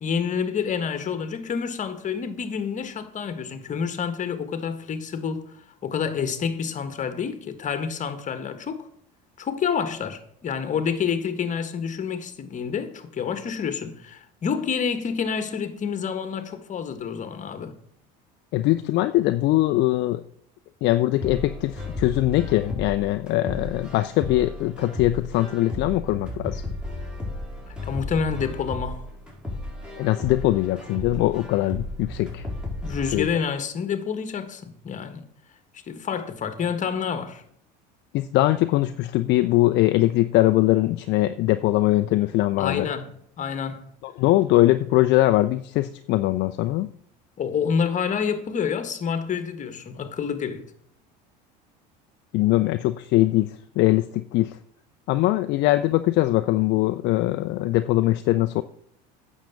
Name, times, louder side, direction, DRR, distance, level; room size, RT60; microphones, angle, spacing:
voice 1, 0.0-5.5 5.8-8.9 9.4-17.7 27.9-29.1 32.8-35.3 35.9-37.4 42.6-43.9 47.4-50.7, left 6 dB, 35° left, 1.6 m, -28 dB
voice 2, 18.5-20.2 20.8-26.6 30.0-32.4 33.1-33.3 38.1-42.9 44.0-46.9 52.3-54.6 55.1-58.6, left 16 dB, 55° left, 0.6 m, -22 dB
sound 1, 21.2-33.2, left 2 dB, 5° right, 4.8 m, -34 dB
9.0 x 6.6 x 7.2 m
supercardioid pair, 90°, 21 cm